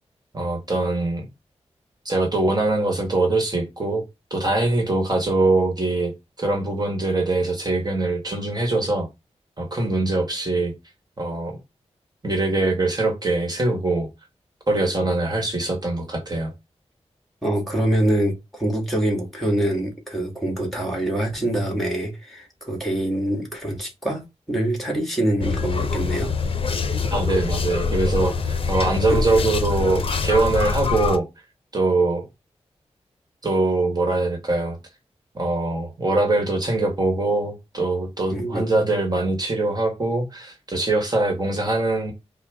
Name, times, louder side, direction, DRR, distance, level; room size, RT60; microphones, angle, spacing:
voice 1, 0.3-1.3 2.0-4.0 4.3-6.1 6.4-9.1 9.6-10.7 11.2-11.6 12.2-14.1 14.7-16.5 27.1-31.3 31.7-32.3 33.4-34.8 35.3-42.1, right 2 dB, 35° right, 1.2 m, -23 dB
voice 2, 17.4-26.3 29.1-29.2 38.3-38.9, right 1 dB, ahead, 1.6 m, -25 dB
sound 1, 25.4-31.2, left 5 dB, 55° left, 0.6 m, -24 dB
4.6 x 2.1 x 3.5 m
wide cardioid pair, 75°, 11 cm